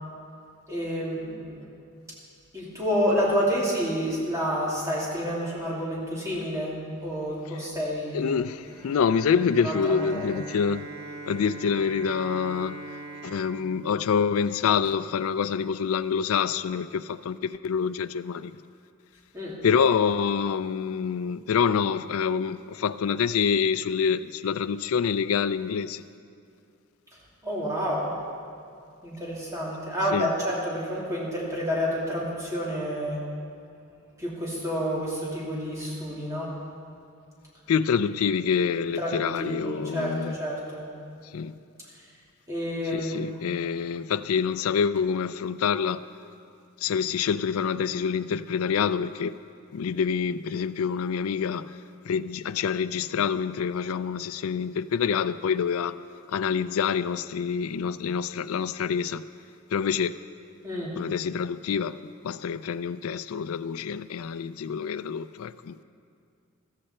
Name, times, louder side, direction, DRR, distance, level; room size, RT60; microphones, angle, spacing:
voice 1, 0.7-1.6 2.5-8.4 9.6-10.3 19.3-19.6 27.4-28.1 29.0-33.2 34.2-36.5 39.0-40.8 42.5-43.3 60.6-60.9, equal, 15° right, 2.9 m, -29 dB
voice 2, 8.1-10.9 11.3-12.8 13.2-18.6 19.6-26.0 30.1-30.3 37.7-40.4 41.3-41.6 42.9-46.0 46.8-49.3 49.7-51.7 52.1-56.0 56.3-59.2 59.7-60.2 61.0-62.0 62.2-65.8, left 6 dB, 85° left, 0.4 m, -26 dB
Bowed string instrument, 8.6-14.7, right 2 dB, 55° right, 4.0 m, -42 dB
15.0 x 14.0 x 4.4 m
head